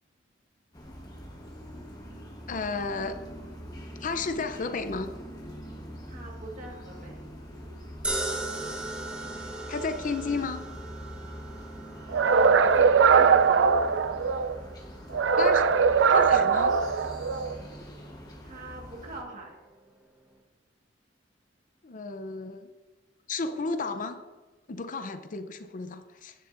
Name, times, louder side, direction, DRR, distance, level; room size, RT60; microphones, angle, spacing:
sound 1, 0.7-19.2, equal, 20° left, 1.4 m, -43 dB
voice 1, 2.5-3.2 4.0-5.1 9.7-10.6 15.4-15.7 16.1-16.8 21.8-22.7 23.3-24.2 24.7-26.3, left 4 dB, 45° left, 9 dB, 0.6 m, -32 dB
voice 2, 6.1-7.1 12.1-13.8 18.4-19.6, right 2 dB, 45° right, -1 dB, 1.7 m, -43 dB
sound 2, 8.0-20.4, right 2 dB, 5° right, 1.1 m, -40 dB
sound 3, 12.1-14.5 15.1-17.6, right 5 dB, 70° right, 0.4 m, -21 dB
10.5 x 10.0 x 2.6 m, 1.2 s
head